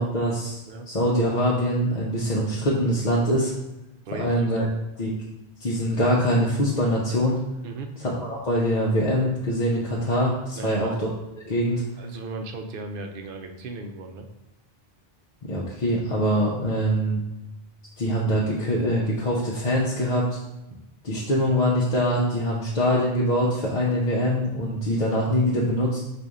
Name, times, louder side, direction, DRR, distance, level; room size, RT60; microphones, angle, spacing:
voice 1, 0.0-0.6 0.9-3.5 4.1-4.7 5.0-5.1 5.6-7.4 8.0-11.1 11.5-11.8 15.4-17.2 18.0-20.4 21.0-26.0, equal, 50° left, -5 dB, 0.7 m, -23 dB
voice 2, 4.1-4.7 7.6-7.9 10.6-11.1 12.0-14.3 21.3-21.4, right 3 dB, 65° right, 5 dB, 0.7 m, -36 dB
4.0 x 2.6 x 4.8 m, 0.94 s
omnidirectional pair, 1.0 m